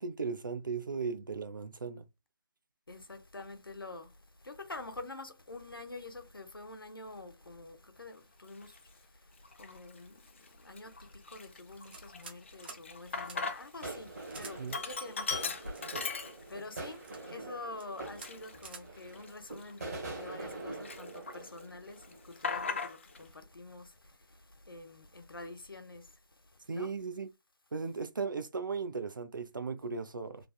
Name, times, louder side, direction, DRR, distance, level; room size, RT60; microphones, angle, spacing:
voice 1, 0.0-2.0 14.6-14.8 26.7-27.3 27.7-30.5, right 5 dB, 65° right, 0.7 m, -37 dB
voice 2, 2.9-4.1 4.4-26.2 26.7-26.9, left 2 dB, 80° left, 1.0 m, -47 dB
Sink (filling or washing), 8.6-8.8 9.4-10.0 10.4-10.5 10.8-13.9 14.2-16.8 17.2-17.3 18.0-20.5 20.8-21.6 21.9-23.2, left 4 dB, 35° left, 0.4 m, -39 dB
sound 1, 11.9-12.4 12.6-12.8 13.2-13.4 14.3-14.6 15.3-16.0 16.7-17.2 17.7-17.9 18.2-18.3 18.6-18.8, right 4 dB, 25° right, 0.6 m, -48 dB
sound 2, 13.8-22.3 22.6-22.7, right 2 dB, 45° right, 1.2 m, -44 dB
3.3 x 2.4 x 2.3 m
figure-of-eight pair, 155°, 12 cm